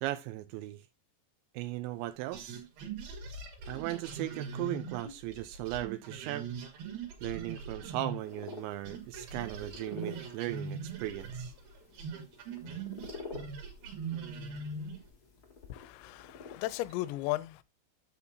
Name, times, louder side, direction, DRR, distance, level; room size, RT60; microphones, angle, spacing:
voice 1, 0.0-0.8 1.5-2.6 3.7-6.5 7.2-11.5, right 15 dB, 85° right, 2.8 m, -37 dB
sound 1, 2.3-8.6 8.9-15.1, right 5 dB, 60° right, 3.3 m, -41 dB
sound 2, 8.2-16.9, left 4 dB, 45° left, 1.2 m, -50 dB
voice 2, 15.7-17.6, left 17 dB, 85° left, 2.8 m, -35 dB
9.9 x 7.0 x 2.7 m
omnidirectional pair, 5.2 m